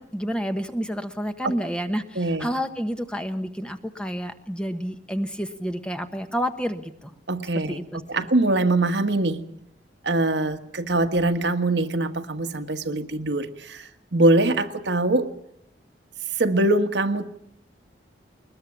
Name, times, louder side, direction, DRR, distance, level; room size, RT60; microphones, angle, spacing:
voice 1, 0.0-7.1 7.5-8.3, equal, 5° left, 8 dB, 1.2 m, -30 dB
voice 2, 2.2-2.5 7.3-7.8 8.1-9.4 10.0-15.3 16.3-17.3, right 2 dB, 75° right, 7 dB, 1.5 m, -23 dB
21.5 x 21.0 x 7.4 m, 0.71 s
head